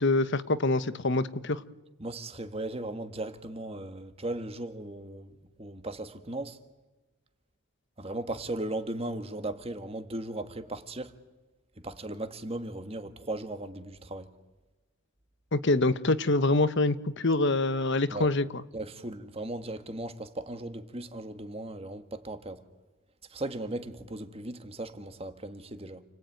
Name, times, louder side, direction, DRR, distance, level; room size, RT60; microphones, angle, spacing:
voice 1, 0.0-1.6 15.5-18.4, left 2 dB, 55° left, 1.1 m, -25 dB
voice 2, 2.0-6.6 8.0-11.2 11.8-14.3 18.1-18.3 18.7-22.6 23.3-26.0, right 1 dB, 25° right, 1.6 m, -37 dB
29.5 x 20.0 x 9.3 m
head